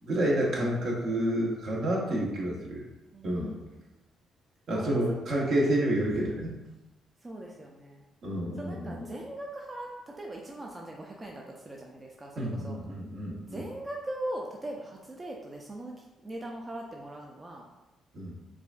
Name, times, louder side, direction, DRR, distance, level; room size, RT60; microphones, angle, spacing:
voice 1, 0.0-2.8 3.2-3.5 4.7-6.5 8.2-9.0 12.4-13.6 18.1-18.3, right 1 dB, 65° right, -3 dB, 1.0 m, -29 dB
voice 2, 3.1-3.7 4.7-5.7 7.2-8.0 8.6-12.8 13.5-17.7, right 1 dB, 25° right, -1 dB, 0.4 m, -40 dB
4.8 x 2.5 x 2.4 m, 0.99 s
cardioid pair, 90°, 0 cm